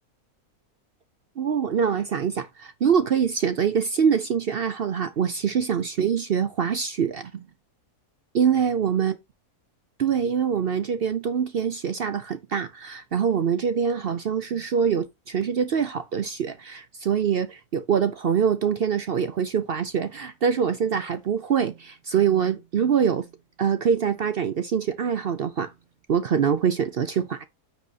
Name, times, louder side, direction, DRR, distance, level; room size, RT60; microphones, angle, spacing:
voice 1, 1.4-7.5 8.3-9.1 10.0-23.3 23.6-25.7 26.1-27.4, right 7 dB, 60° right, 0.6 m, -24 dB
10.0 x 6.1 x 2.7 m
omnidirectional pair, 1.6 m